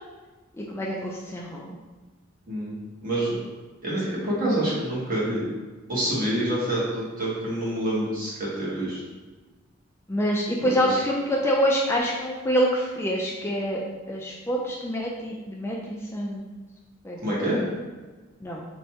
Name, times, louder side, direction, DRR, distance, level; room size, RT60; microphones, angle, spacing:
voice 1, 0.6-1.7 10.1-13.8 14.1-16.4 17.0-17.4 18.4-18.7, equal, 10° left, -2 dB, 0.3 m, -26 dB
voice 2, 3.0-3.4 3.8-5.5 5.9-9.0 10.6-11.0 17.2-17.6, right 1 dB, 45° right, -6 dB, 1.3 m, -27 dB
4.4 x 3.1 x 2.8 m, 1.3 s
head